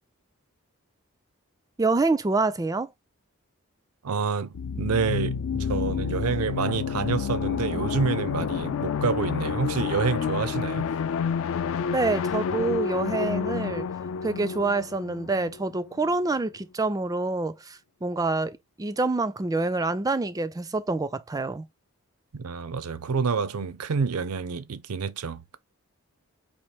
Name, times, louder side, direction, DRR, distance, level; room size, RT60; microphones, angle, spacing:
voice 1, 1.8-2.9 11.9-13.9 14.2-21.7, right 3 dB, 15° right, 0.4 m, -27 dB
voice 2, 4.0-10.9 22.3-25.6, right 5 dB, 85° right, 0.5 m, -28 dB
sound 1, 4.5-16.1, left 6 dB, 60° left, 0.3 m, -29 dB
4.3 x 2.9 x 3.3 m
head